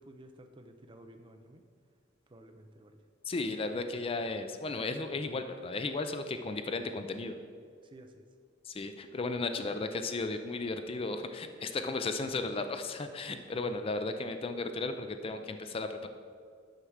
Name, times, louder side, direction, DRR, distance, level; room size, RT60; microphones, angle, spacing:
voice 1, 0.0-1.6 2.3-3.0 7.9-8.2 13.3-13.8, right 1 dB, 25° right, 7 dB, 0.5 m, -53 dB
voice 2, 3.2-7.4 8.6-16.1, left 3 dB, 30° left, 8 dB, 0.4 m, -35 dB
6.5 x 6.0 x 6.3 m, 2.1 s
head